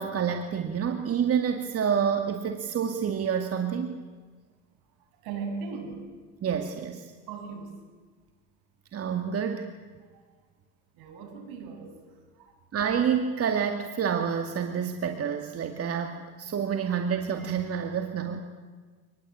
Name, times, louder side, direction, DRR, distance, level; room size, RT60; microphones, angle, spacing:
voice 1, 0.0-4.0 6.4-7.1 8.9-9.7 12.7-18.4, right 7 dB, 40° right, 5 dB, 2.3 m, -28 dB
voice 2, 5.0-6.2 7.3-7.8 10.1-10.2 10.9-12.6 16.8-17.0, right 5 dB, 70° right, 4 dB, 7.6 m, -39 dB
26.5 x 20.5 x 8.8 m, 1.5 s
supercardioid pair, 105°, 38 cm